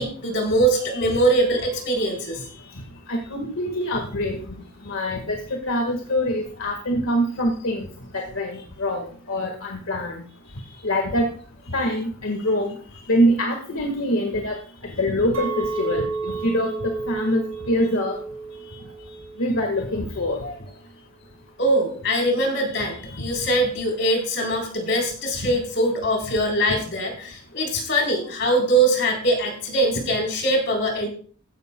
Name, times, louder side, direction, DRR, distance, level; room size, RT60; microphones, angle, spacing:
voice 1, 0.0-2.4 18.7-18.8 20.4-20.5 21.6-31.1, right 1 dB, 60° left, 1 dB, 3.9 m, -22 dB
voice 2, 3.1-4.4 4.9-5.4 5.7-7.9 8.1-10.2 10.8-11.3 11.7-12.7 13.1-14.6 14.8-17.4 17.7-18.2 19.4-20.4 25.4-25.5, equal, 80° left, 2 dB, 1.7 m, -24 dB
Chink clink, 15.3-19.7 20.0-20.5, right 4 dB, 85° right, 2.5 m, -32 dB
15.0 x 10.5 x 2.3 m, 0.43 s
head